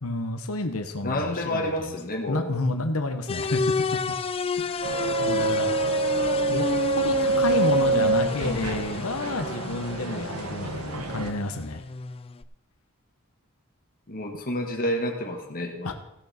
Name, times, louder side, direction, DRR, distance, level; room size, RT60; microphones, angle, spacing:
voice 1, 0.0-1.9 2.3-3.6 4.6-5.8 6.5-6.7 6.9-11.8 15.8-15.9, left 2 dB, 80° left, 7 dB, 1.1 m, -30 dB
voice 2, 1.0-2.5 14.1-15.9, left 1 dB, 40° left, 2 dB, 1.7 m, -29 dB
sound 1, 3.3-12.4, left 4 dB, 25° left, 0.3 m, -32 dB
sound 2, 4.8-11.3, right 3 dB, 80° right, 1.1 m, -26 dB
16.5 x 6.6 x 4.4 m, 0.83 s
head